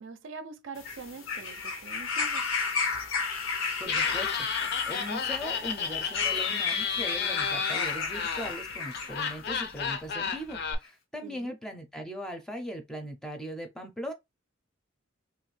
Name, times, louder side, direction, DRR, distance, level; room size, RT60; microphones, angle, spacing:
voice 1, 0.0-2.5 11.2-11.5, right 4 dB, 70° right, 0.5 m, -44 dB
sound 1, 0.8-9.4 10.3-10.4, left 5 dB, 90° left, 0.8 m, -33 dB
Laughter, 3.8-10.7, left 6 dB, 55° left, 0.6 m, -32 dB
voice 2, 3.8-4.5 4.8-14.1, equal, 5° left, 0.5 m, -39 dB
2.9 x 2.5 x 3.2 m
head